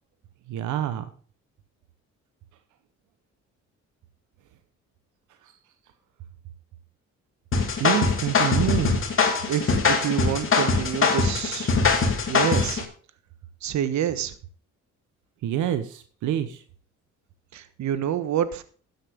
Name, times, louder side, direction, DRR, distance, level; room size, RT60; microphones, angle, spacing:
voice 1, 0.5-1.1 5.4-5.5 7.8-9.0 15.4-16.6, right 11 dB, 85° right, 9 dB, 1.1 m, -27 dB
sound 1, 7.5-12.8, left 4 dB, 45° left, 2.9 m, -22 dB
voice 2, 9.5-11.7 12.3-12.8 13.6-14.3 17.5-18.6, right 9 dB, 65° right, 12 dB, 1.3 m, -27 dB
13.5 x 9.9 x 3.6 m, 0.43 s
cardioid pair, 90°, 30 cm